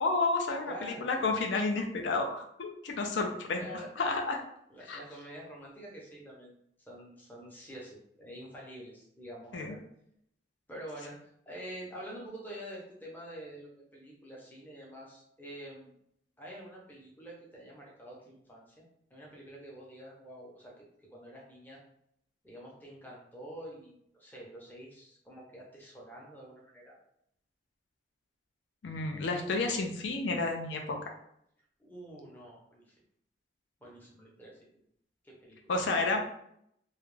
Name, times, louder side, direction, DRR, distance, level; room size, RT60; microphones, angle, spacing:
voice 1, 0.0-3.6 4.0-4.4 4.9-5.0 9.5-9.8 28.8-31.0 35.7-36.2, left 3 dB, 75° left, 3 dB, 0.4 m, -31 dB
voice 2, 0.7-1.0 3.6-3.9 4.7-6.5 6.9-9.8 10.7-11.2 11.5-15.9 16.4-18.8 19.1-20.7 21.1-21.8 22.4-27.0 31.8-32.9 33.8-34.6 35.2-35.6, equal, 10° left, -4 dB, 0.6 m, -47 dB
2.3 x 2.1 x 3.1 m, 0.72 s
head